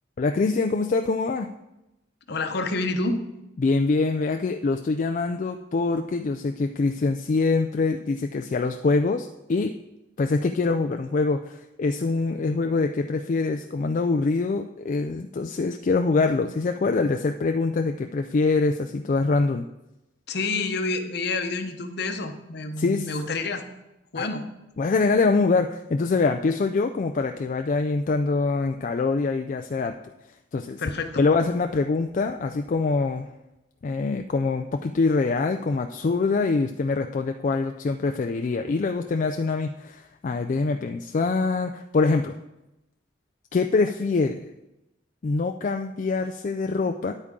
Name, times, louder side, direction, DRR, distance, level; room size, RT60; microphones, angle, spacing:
voice 1, 0.2-1.5 3.6-9.8 10.2-19.7 22.8-23.1 24.2-24.3 24.8-30.0 30.5-30.8 31.2-33.3 33.8-42.4 43.5-44.5 45.2-47.1, left 3 dB, 40° left, 6 dB, 0.4 m, -24 dB
voice 2, 2.3-3.3 20.3-23.6 24.1-24.5 30.8-31.2, left 3 dB, 60° left, 7 dB, 0.9 m, -28 dB
10.0 x 8.2 x 3.7 m, 0.93 s
head